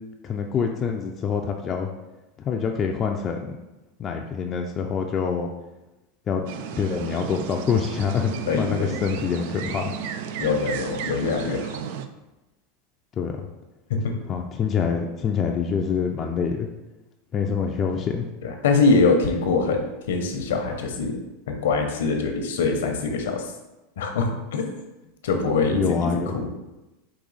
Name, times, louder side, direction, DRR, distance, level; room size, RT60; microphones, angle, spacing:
voice 1, 0.2-1.9 2.4-3.6 4.0-5.5 6.3-6.5 6.8-10.0 13.2-13.5 14.3-16.7 17.3-18.3 25.7-26.4, left 6 dB, 30° left, 2 dB, 0.4 m, -26 dB
sound 1, 6.5-12.1, right 7 dB, 65° right, 0.3 m, -33 dB
voice 2, 8.5-9.0 10.4-11.8 13.9-14.1 18.4-21.2 21.5-23.5 24.0-24.9 25.2-25.8 26.3-26.5, left 4 dB, 80° left, 4 dB, 0.8 m, -23 dB
5.0 x 2.6 x 4.0 m, 1.0 s
supercardioid pair, 115°, 0 cm